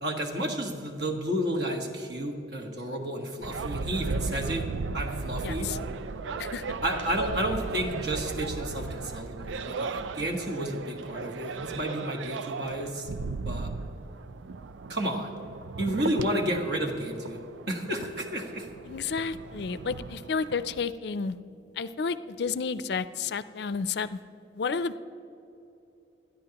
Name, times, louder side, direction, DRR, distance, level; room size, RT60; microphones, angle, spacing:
voice 1, 0.0-4.6 4.9-5.7 6.8-13.1 13.4-13.7 14.9-15.3 15.8-17.4 17.7-18.7, right 1 dB, 60° right, 2 dB, 1.6 m, -31 dB
sound 1, 3.4-20.8, right 4 dB, 85° right, 0.4 m, -36 dB
voice 2, 5.4-5.8 6.4-6.6 18.9-21.4 21.8-24.2 24.5-25.0, left 5 dB, 60° left, 14 dB, 0.4 m, -31 dB
20.5 x 13.0 x 2.9 m, 2.9 s
head